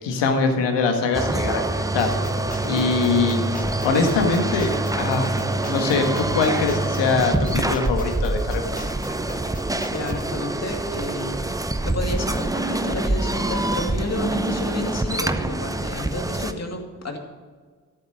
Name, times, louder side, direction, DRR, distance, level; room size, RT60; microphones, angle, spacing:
voice 1, 0.0-1.6 1.9-2.1 2.6-3.4 3.8-5.4 5.7-8.6, left 4 dB, 65° left, 5 dB, 1.8 m, -22 dB
sound 1, 1.1-16.5, right 2 dB, 10° right, 0.8 m, -25 dB
sound 2, 2.0-10.3, left 2 dB, 15° left, 1.6 m, -39 dB
voice 2, 9.9-11.4 11.8-17.2, left 2 dB, 35° left, 3 dB, 2.5 m, -31 dB
13.0 x 7.4 x 6.4 m, 1.5 s
hypercardioid pair, 40°, 45 cm